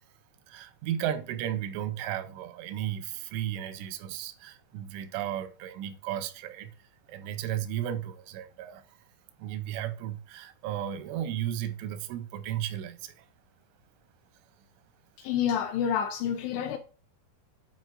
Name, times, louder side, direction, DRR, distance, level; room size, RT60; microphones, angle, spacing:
voice 1, 0.5-6.7 7.1-8.8 9.4-13.2, right 11 dB, 90° right, 3.2 m, -34 dB
voice 2, 15.2-16.8, left 8 dB, 80° left, 2.5 m, -28 dB
11.0 x 4.7 x 2.5 m
omnidirectional pair, 5.3 m